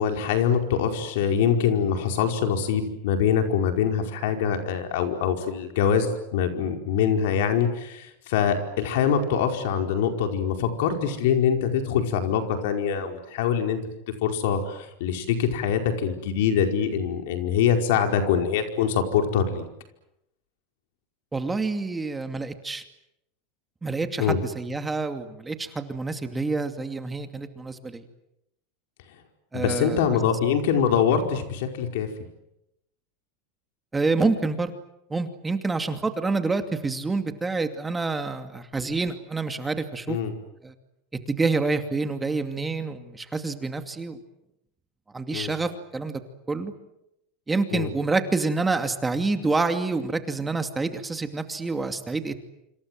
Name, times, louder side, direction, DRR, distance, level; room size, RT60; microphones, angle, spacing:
voice 1, 0.0-6.1 6.3-13.8 14.2-19.7 24.2-24.4 29.5-32.1 40.1-40.3 45.3-45.5 47.7-47.9, left 7 dB, 75° left, 5 dB, 4.9 m, -24 dB
voice 2, 21.3-22.8 23.8-28.0 29.5-30.2 33.9-34.7 35.1-40.2 40.6-40.7 41.3-44.2 45.1-46.2 46.5-46.7 47.5-52.4, right 3 dB, 15° right, 8 dB, 2.5 m, -27 dB
26.5 x 26.5 x 7.8 m, 0.84 s
supercardioid pair, 120°, 0 cm